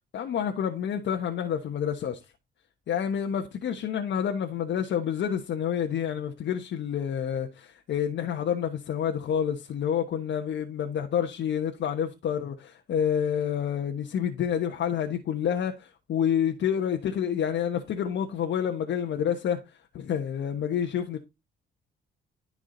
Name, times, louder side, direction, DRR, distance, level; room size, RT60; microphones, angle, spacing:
voice 1, 0.1-2.2 2.9-19.6 19.9-21.2, left 8 dB, 65° left, 1.2 m, -28 dB
14.5 x 4.9 x 3.9 m
cardioid pair, 90°, 20 cm